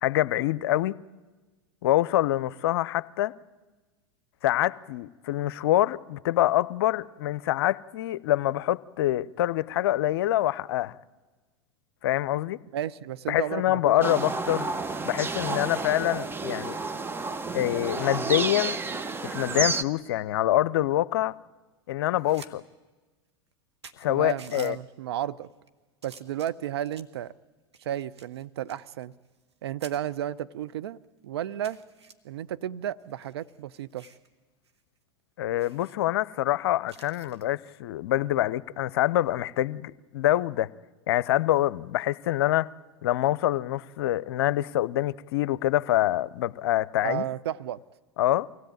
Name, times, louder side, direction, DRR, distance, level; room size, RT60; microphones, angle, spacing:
voice 1, 0.0-1.0 1.8-3.3 4.4-11.0 12.0-12.6 13.3-14.7 15.0-16.8 17.5-18.8 19.2-21.4 21.9-22.6 24.0-24.8 35.4-40.7 41.1-42.7 43.0-47.2 48.2-48.5, left 14 dB, 65° left, 0.6 m, -25 dB
voice 2, 12.7-14.3 24.1-25.5 26.0-27.3 27.8-29.1 29.6-31.0 31.2-31.8 32.2-34.1 47.0-47.8, right 11 dB, 70° right, 0.7 m, -33 dB
sound 1, 14.0-19.8, right 4 dB, 15° right, 0.9 m, -31 dB
sound 2, 22.0-22.5 22.9-23.0 23.5-23.6 23.8-24.7 25.4-25.7 26.0-27.2 27.7-29.6 29.8-30.0 30.6-30.7 31.0-31.1 31.6-32.1 33.0-34.3 34.6-34.8 35.1-35.2 35.6-36.0 36.9-37.5 39.2-39.4, right 5 dB, 90° right, 1.4 m, -51 dB
24.0 x 16.5 x 9.1 m
hypercardioid pair, 90°, 14 cm